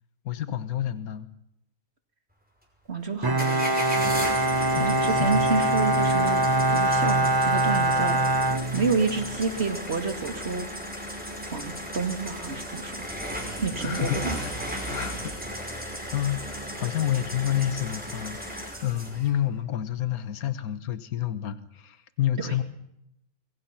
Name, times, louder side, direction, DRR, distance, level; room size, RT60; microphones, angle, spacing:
voice 1, 0.2-1.3 4.8-5.5 13.8-14.6 14.9-15.3 15.6-22.6, left 11 dB, 75° left, 13 dB, 1.6 m, -29 dB
voice 2, 2.9-3.8 4.8-6.4 6.7-8.2 8.7-10.7 11.5-13.1 13.6-14.4 22.4-22.5, right 4 dB, 45° right, 6 dB, 2.5 m, -29 dB
Bowed string instrument, 3.2-9.4, right 1 dB, 25° right, 0.5 m, -23 dB
sound 1, 3.4-19.3, equal, 5° right, 5.4 m, -35 dB
25.5 x 23.0 x 5.9 m, 0.80 s
omnidirectional pair, 1.6 m